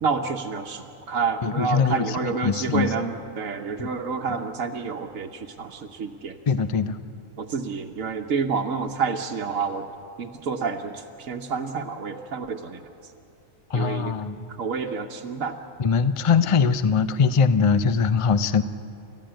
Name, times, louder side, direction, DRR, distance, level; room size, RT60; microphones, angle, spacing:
voice 1, 0.0-6.4 7.4-9.9 10.2-12.8 13.7-14.2 14.6-15.6, right 5 dB, 80° right, 1 dB, 1.3 m, -29 dB
voice 2, 1.4-2.9 3.8-3.9 6.5-7.0 13.7-14.4 15.8-18.6, left 5 dB, 45° left, 12 dB, 0.4 m, -22 dB
29.5 x 14.0 x 8.9 m, 2.8 s
omnidirectional pair, 1.3 m